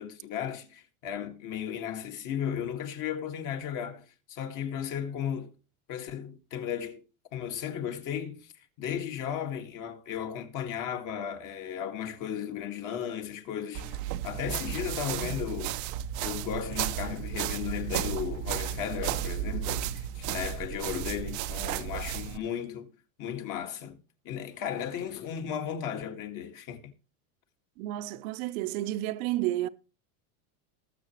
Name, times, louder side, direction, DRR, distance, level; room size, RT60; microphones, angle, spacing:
voice 1, 0.0-5.5 5.9-7.0 7.3-8.5 8.8-15.8 16.2-22.9 23.2-24.0 24.2-26.9, left 9 dB, 40° left, 1.9 m, -35 dB
sound 1, 13.7-22.4, right 11 dB, 40° right, 0.6 m, -33 dB
Sliding door / Wood, 18.5-19.7 21.2-21.3 21.6-22.7 24.5-25.4, left 7 dB, 75° left, 3.7 m, -53 dB
voice 2, 27.8-29.7, right 15 dB, 70° right, 0.9 m, -31 dB
20.0 x 6.9 x 3.1 m
supercardioid pair, 140°, 45 cm